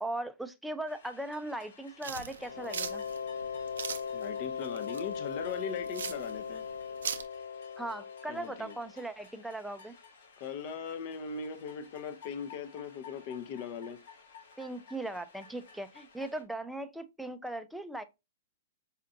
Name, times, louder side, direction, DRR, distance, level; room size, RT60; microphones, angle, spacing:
voice 1, 0.0-3.0 7.8-9.9 14.6-18.0, right 1 dB, 5° right, 0.4 m, -38 dB
sound 1, 0.9-16.4, left 5 dB, 70° left, 0.9 m, -56 dB
sound 2, 2.0-7.2, right 7 dB, 80° right, 0.4 m, -40 dB
sound 3, 2.4-9.0, left 6 dB, 90° left, 0.3 m, -39 dB
voice 2, 4.1-6.7 8.3-8.7 10.4-14.0, left 6 dB, 45° left, 0.6 m, -39 dB
4.3 x 2.5 x 2.5 m
hypercardioid pair, 130°, 0 cm